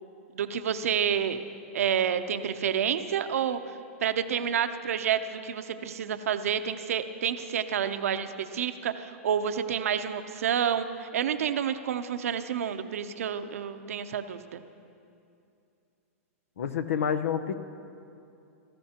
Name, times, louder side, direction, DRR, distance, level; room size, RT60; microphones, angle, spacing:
voice 1, 0.3-1.4 1.7-3.6 4.0-14.6, right 8 dB, 80° right, 10 dB, 0.7 m, -29 dB
voice 2, 16.6-17.5, left 8 dB, 80° left, 12 dB, 0.7 m, -28 dB
18.0 x 14.5 x 2.9 m, 2.6 s
hypercardioid pair, 130°, 8 cm